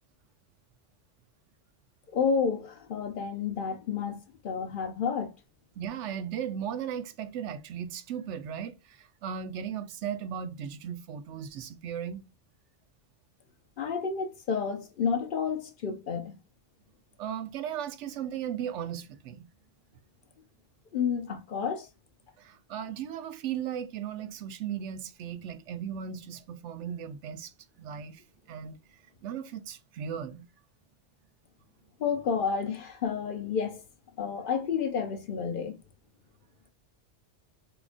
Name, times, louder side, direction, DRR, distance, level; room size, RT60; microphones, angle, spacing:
voice 1, 2.1-5.3 13.8-16.3 20.9-21.9 32.0-33.8 34.2-35.8, left 6 dB, 60° left, 0.6 m, -30 dB
voice 2, 5.8-12.2 17.2-19.5 22.4-28.2 28.5-28.8 29.2-30.5, right 8 dB, 85° right, 0.9 m, -36 dB
3.6 x 2.9 x 2.4 m
omnidirectional pair, 1.2 m